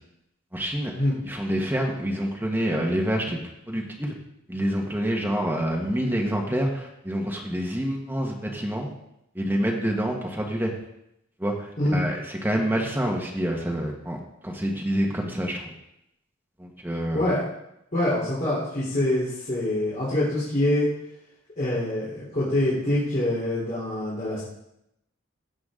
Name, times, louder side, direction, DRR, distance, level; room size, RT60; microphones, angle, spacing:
voice 1, 0.5-0.9 1.2-3.4 3.7-4.1 4.5-8.9 9.3-10.7 11.4-14.2 14.4-15.7 16.6-17.2, equal, 10° right, -1 dB, 1.5 m, -27 dB
voice 2, 17.9-20.9 21.6-24.4, left 1 dB, 40° left, -9 dB, 3.8 m, -25 dB
16.5 x 7.4 x 3.9 m, 0.81 s
head